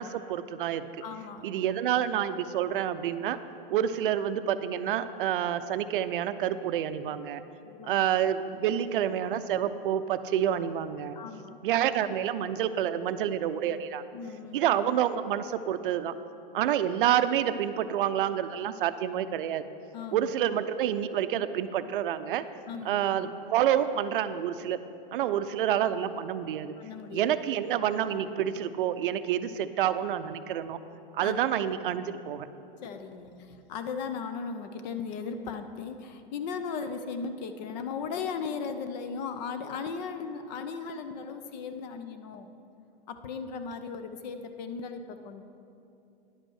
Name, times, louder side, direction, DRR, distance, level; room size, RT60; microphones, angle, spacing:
voice 1, 0.0-0.9 1.4-3.4 3.7-7.4 7.9-11.2 11.6-14.0 14.5-16.1 16.5-19.6 20.1-22.4 22.8-24.8 25.1-26.7 27.1-30.8 31.1-32.5, right 10 dB, 65° right, 12 dB, 0.5 m, -28 dB
voice 2, 1.0-1.5 7.7-8.0 8.7-8.8 11.1-11.7 14.1-14.6 19.9-20.3 22.7-23.0 26.8-27.3 31.2-31.4 32.8-42.5 43.1-45.4, left 5 dB, 45° left, 9 dB, 0.7 m, -37 dB
10.5 x 5.1 x 6.4 m, 2.6 s
hypercardioid pair, 135°, 29 cm